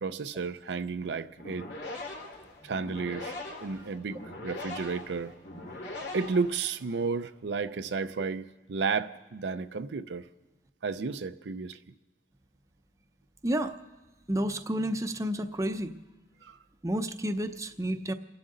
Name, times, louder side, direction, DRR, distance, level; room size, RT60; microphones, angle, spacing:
voice 1, 0.0-1.7 2.6-3.4 3.6-5.3 6.1-10.3 10.8-11.8 16.4-16.6, right 4 dB, 80° right, 10 dB, 0.5 m, -32 dB
sound 1, 1.3-7.0, left 2 dB, 85° left, 2.5 m, -41 dB
voice 2, 13.4-13.7 14.3-15.9 16.8-18.1, right 1 dB, 20° right, 7 dB, 0.7 m, -30 dB
30.0 x 11.0 x 3.9 m, 1.2 s
head